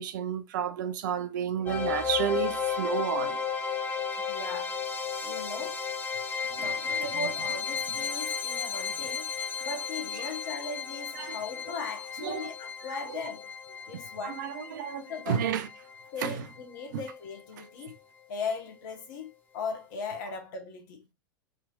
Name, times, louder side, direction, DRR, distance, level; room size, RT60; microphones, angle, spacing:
voice 1, 0.0-3.4 6.5-6.7 7.2-7.3 9.4-9.5 10.2-10.3 11.2-11.4 12.2-12.5 13.1-13.2 14.2-15.7 16.2-16.5 16.9-17.0, right 9 dB, 60° right, 0.5 m, -31 dB
sound 1, 1.7-16.6, left 6 dB, 15° left, 0.6 m, -34 dB
voice 2, 4.2-4.8 5.2-5.8 6.6-9.3 9.6-13.5 13.9-14.4 15.1-15.5 16.1-17.9 18.3-21.1, left 4 dB, 55° left, 1.1 m, -38 dB
3.6 x 2.8 x 2.3 m
figure-of-eight pair, 90°, 12 cm